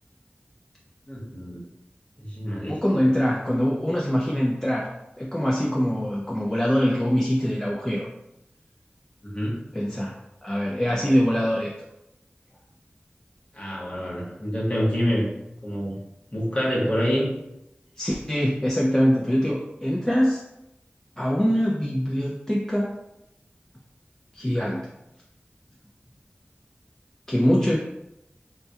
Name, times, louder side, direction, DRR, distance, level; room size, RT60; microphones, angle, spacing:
voice 1, 1.1-1.6 2.2-2.8 9.2-9.6 13.5-15.3 15.6-16.0 16.3-17.3, equal, 30° left, -6 dB, 1.0 m, -26 dB
voice 2, 2.7-8.1 9.7-10.2 10.4-11.7 18.0-20.4 21.2-23.0 24.3-24.9 27.3-27.8, equal, 15° left, -4 dB, 0.3 m, -23 dB
2.2 x 2.2 x 2.7 m, 0.89 s
wide cardioid pair, 45°, 4 cm